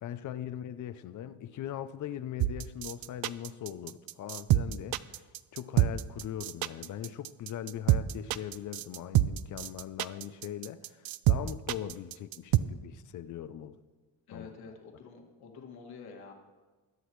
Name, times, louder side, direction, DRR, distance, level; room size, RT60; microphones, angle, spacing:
voice 1, 0.0-5.2 5.5-13.8 14.3-14.5, left 10 dB, 50° left, 0.6 m, -40 dB
sound 1, 2.4-12.6, right 14 dB, 65° right, 0.5 m, -27 dB
voice 2, 14.3-16.3, left 5 dB, 65° left, 2.2 m, -48 dB
21.0 x 10.0 x 3.2 m
cardioid pair, 170°, 40 cm